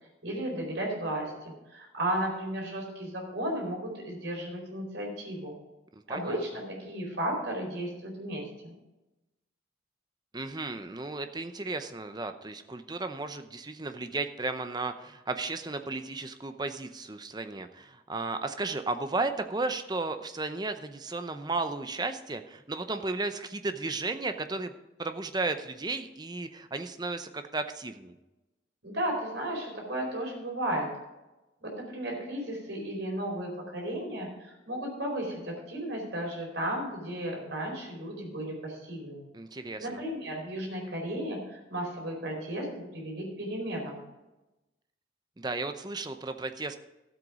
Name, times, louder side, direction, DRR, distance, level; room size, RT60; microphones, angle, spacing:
voice 1, 0.2-5.5 6.1-8.7 28.8-30.9 31.6-39.2 39.8-42.7 42.9-44.0, right 1 dB, 65° right, -1 dB, 4.5 m, -34 dB
voice 2, 10.3-24.7 25.0-28.1 39.3-40.0 45.4-46.8, right 3 dB, 20° right, 8 dB, 0.7 m, -34 dB
13.0 x 8.1 x 4.9 m, 1.0 s
head